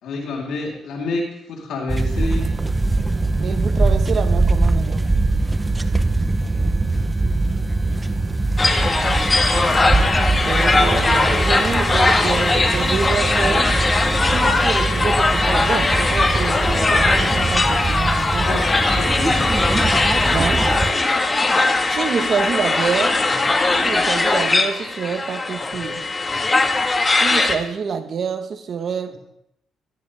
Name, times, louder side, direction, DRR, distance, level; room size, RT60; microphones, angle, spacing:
voice 1, 0.0-2.5 6.3-6.8 18.3-19.5 23.3-23.5, left 3 dB, 75° left, -1 dB, 3.8 m, -29 dB
sound 1, 1.9-20.9, right 2 dB, 20° right, 0.9 m, -22 dB
voice 2, 3.4-5.1 10.3-13.7 14.3-18.6 20.3-20.7 21.0-21.2 21.9-23.2 23.8-26.0 27.2-29.2, right 6 dB, 55° right, 7 dB, 1.5 m, -27 dB
sound 2, 8.6-27.6, left 3 dB, 25° left, 1.7 m, -19 dB
17.5 x 13.5 x 3.6 m, 0.76 s
cardioid pair, 90°, 0 cm